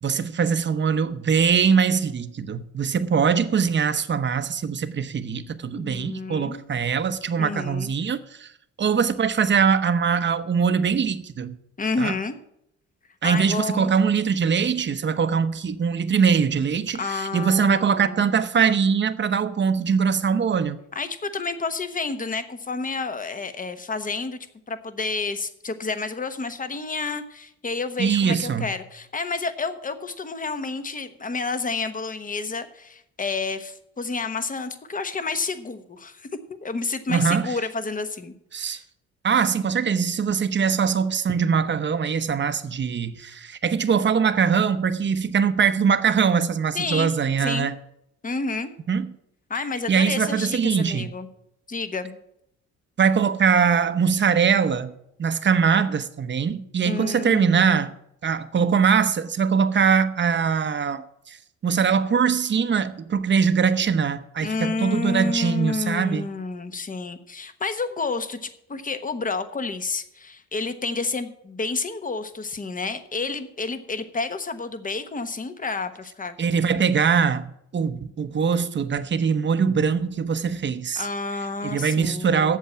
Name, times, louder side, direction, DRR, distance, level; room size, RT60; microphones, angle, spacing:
voice 1, 0.0-8.5 8.8-11.5 12.0-12.1 13.2-20.8 28.0-28.7 37.1-37.5 38.5-38.8 39.2-47.8 48.9-49.1 49.9-51.1 53.0-54.9 55.2-57.9 58.2-61.4 61.6-66.3 76.4-81.1 81.6-82.6, right 6 dB, 40° right, 0.9 m, -22 dB
voice 2, 5.7-6.6 7.4-7.9 11.8-12.4 13.2-13.9 17.0-18.2 20.9-24.4 24.7-36.3 36.6-38.3 38.6-38.8 46.7-47.1 47.4-47.7 48.2-48.7 49.5-51.3 51.7-52.2 56.8-57.8 64.4-76.4 81.0-82.6, left 4 dB, 25° left, 1.1 m, -30 dB
8.4 x 7.2 x 8.6 m
cardioid pair, 90°, 30 cm